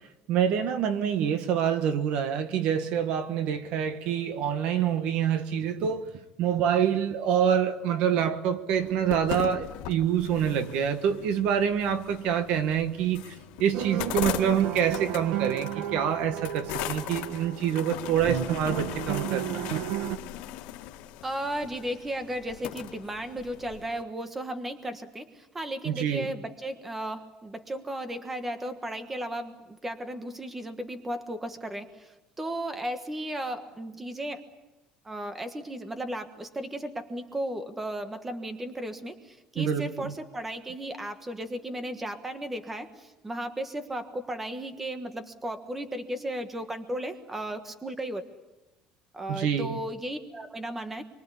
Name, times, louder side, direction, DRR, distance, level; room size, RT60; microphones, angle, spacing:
voice 1, 0.3-6.1 6.4-19.7 25.8-26.3 39.6-40.1 49.3-49.7, right 8 dB, 55° right, 10 dB, 1.5 m, -26 dB
sound 1, 8.7-24.0, left 12 dB, 80° left, 2.0 m, -39 dB
sound 2, 13.7-20.2, right 11 dB, 85° right, 1.4 m, -33 dB
voice 2, 21.2-34.4 35.0-48.2 49.1-51.0, right 1 dB, 10° right, 8 dB, 1.4 m, -35 dB
26.5 x 23.5 x 8.5 m, 1.0 s
cardioid pair, 180°, 2 cm